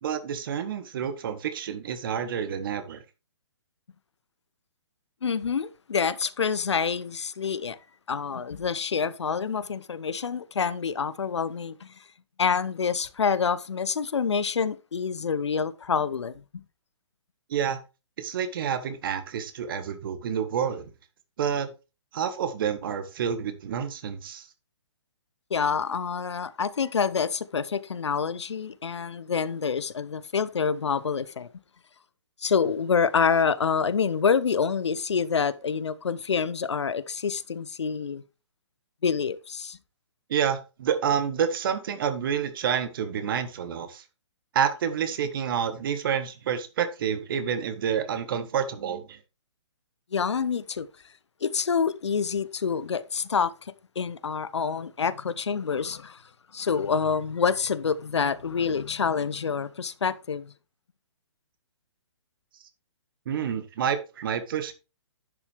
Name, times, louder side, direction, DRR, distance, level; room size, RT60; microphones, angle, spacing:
voice 1, 0.0-3.0 17.5-17.8 18.2-20.9 21.4-21.7 22.1-24.5 40.3-44.0 44.5-49.2 63.2-64.7, right 8 dB, 50° right, 1.7 m, -28 dB
voice 2, 5.2-7.8 8.1-11.9 12.4-16.4 25.5-31.5 32.4-38.2 39.0-39.8 50.1-50.9 51.4-56.2 56.5-60.5, left 6 dB, 70° left, 0.8 m, -27 dB
10.5 x 7.1 x 3.5 m
figure-of-eight pair, 130°, 15 cm